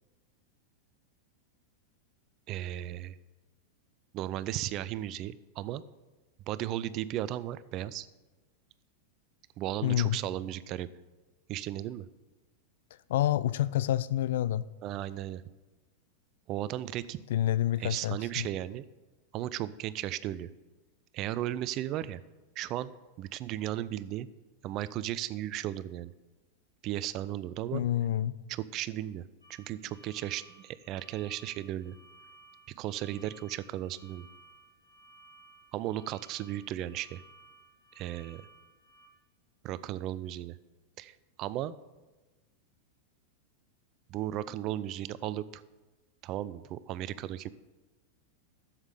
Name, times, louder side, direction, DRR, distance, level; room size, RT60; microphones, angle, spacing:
voice 1, 2.5-3.2 4.1-5.8 6.5-8.1 9.6-10.9 11.5-12.1 14.8-15.4 16.5-17.2 17.8-18.8 19.3-20.5 21.1-22.2 22.6-22.9 23.2-24.3 24.6-26.1 26.8-27.8 28.5-32.0 32.8-34.3 35.7-37.2 38.0-38.4 39.6-40.6 41.0-41.7 44.1-45.6 46.2-47.5, right 13 dB, 35° right, 0.4 m, -35 dB
voice 2, 9.8-10.2 13.1-14.7 17.3-18.5 27.7-28.4, left 12 dB, 55° left, 0.3 m, -28 dB
sound 1, 29.4-39.1, right 3 dB, 90° left, 2.3 m, -58 dB
7.9 x 7.4 x 6.7 m
figure-of-eight pair, 90°, 0 cm